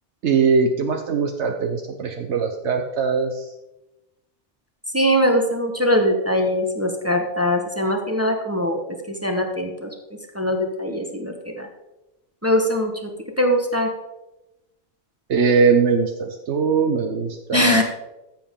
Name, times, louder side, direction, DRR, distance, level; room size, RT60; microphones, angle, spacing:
voice 1, 0.2-3.5 15.3-17.8, right 5 dB, 80° right, 4 dB, 1.1 m, -21 dB
voice 2, 4.9-8.8 9.2-9.9 10.3-11.7 12.4-13.1 13.4-13.9 17.5-17.8, equal, 15° right, 3 dB, 1.2 m, -21 dB
14.5 x 7.5 x 3.7 m, 0.97 s
omnidirectional pair, 1.2 m